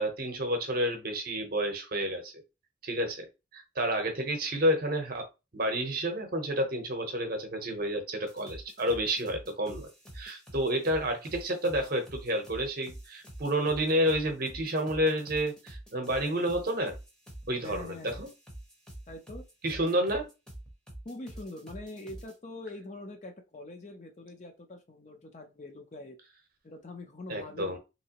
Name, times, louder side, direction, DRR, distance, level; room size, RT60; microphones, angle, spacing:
voice 1, 0.0-2.4 2.8-3.3 3.5-5.3 5.5-9.9 10.1-16.9 17.5-18.3 19.6-20.3 27.3-27.8, equal, 45° right, 0.8 m, -30 dB
sound 1, 8.3-22.3, right 1 dB, 5° left, 0.7 m, -47 dB
voice 2, 17.6-18.3 19.1-19.4 21.0-26.2 26.6-27.8, left 2 dB, 35° left, 0.5 m, -44 dB
3.3 x 2.9 x 2.8 m
head